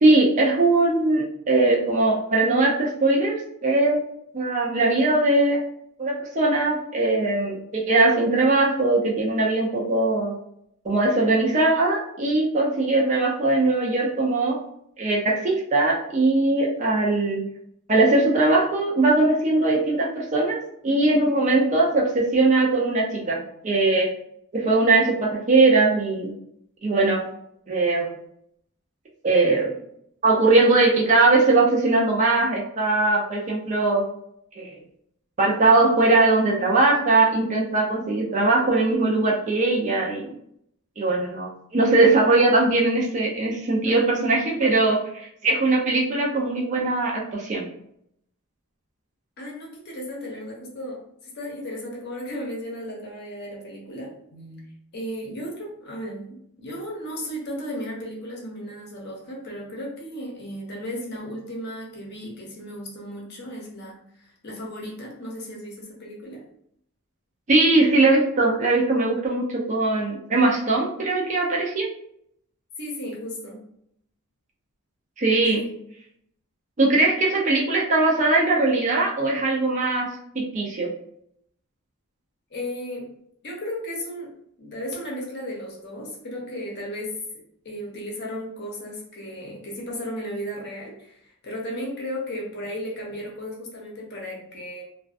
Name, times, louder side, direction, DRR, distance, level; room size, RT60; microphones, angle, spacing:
voice 1, 0.0-3.4 3.6-4.0 4.3-5.6 6.0-10.3 10.8-14.6 15.0-17.4 17.9-20.6 20.8-24.1 24.5-26.3 26.8-27.2 27.7-28.1 29.2-29.7 30.2-34.0 34.6-34.8 35.4-40.3 41.0-47.6 67.5-71.9 75.2-75.6 76.8-80.1 80.3-80.9, right 2 dB, 35° right, -2 dB, 0.4 m, -20 dB
voice 2, 43.8-44.4 49.4-54.7 54.9-66.4 72.8-73.6 75.6-75.8 82.5-83.1 83.4-84.3 84.6-87.2 87.6-94.8, equal, 45° left, -2 dB, 0.7 m, -35 dB
2.4 x 2.2 x 2.4 m, 0.72 s
head